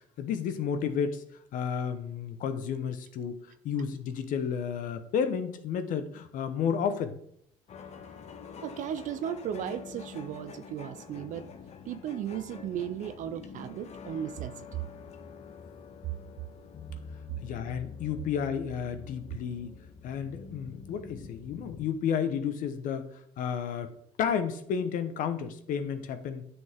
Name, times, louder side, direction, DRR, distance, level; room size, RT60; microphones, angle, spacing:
voice 1, 0.2-1.2 1.5-7.2 17.4-19.7 20.0-23.9 24.2-26.5, left 7 dB, 65° left, 10 dB, 1.0 m, -32 dB
sound 1, 7.7-21.9, left 6 dB, 50° left, 1.0 m, -46 dB
voice 2, 8.6-11.5 11.9-14.7, right 10 dB, 60° right, 11 dB, 0.6 m, -36 dB
9.5 x 6.2 x 3.6 m, 0.69 s
supercardioid pair, 85°, 15 cm